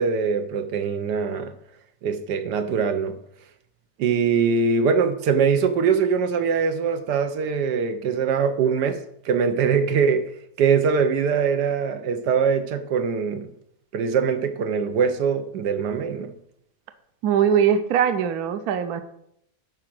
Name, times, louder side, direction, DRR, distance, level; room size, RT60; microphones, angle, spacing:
voice 1, 0.0-1.5 2.0-3.2 4.0-9.0 9.2-10.3 10.6-13.5 13.9-16.3, right 6 dB, 90° right, 1.5 m, -22 dB
voice 2, 17.2-19.0, right 8 dB, 70° right, 1.2 m, -21 dB
11.5 x 4.9 x 6.0 m
omnidirectional pair, 1.7 m